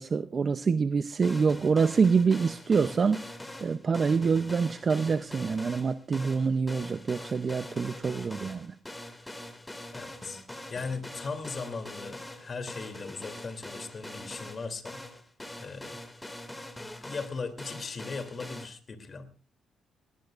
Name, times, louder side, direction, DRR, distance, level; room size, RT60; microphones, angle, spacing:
voice 1, 0.0-8.8, right 5 dB, 40° right, 0.6 m, -26 dB
sound 1, 1.2-18.7, left 1 dB, 10° left, 2.3 m, -43 dB
voice 2, 9.9-10.4 10.7-15.0 15.6-16.0 17.0-19.3, left 4 dB, 40° left, 2.9 m, -38 dB
19.5 x 18.5 x 2.5 m
cardioid pair, 90°, 0 cm